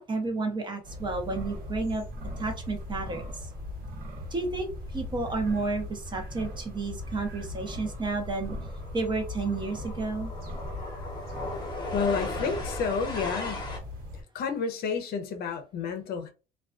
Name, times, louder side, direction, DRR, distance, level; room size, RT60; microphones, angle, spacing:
voice 1, 0.0-2.0 2.4-3.5 4.3-8.6 8.9-10.3, right 3 dB, 25° right, 0.7 m, -31 dB
sound 1, 0.8-14.2, left 1 dB, 60° right, 1.1 m, -39 dB
sound 2, 7.0-7.2 7.5-13.8, left 2 dB, 25° left, 0.8 m, -38 dB
voice 2, 11.9-13.7 14.3-16.3, left 5 dB, 65° left, 0.6 m, -30 dB
2.3 x 2.3 x 2.4 m
cardioid pair, 110°, 17 cm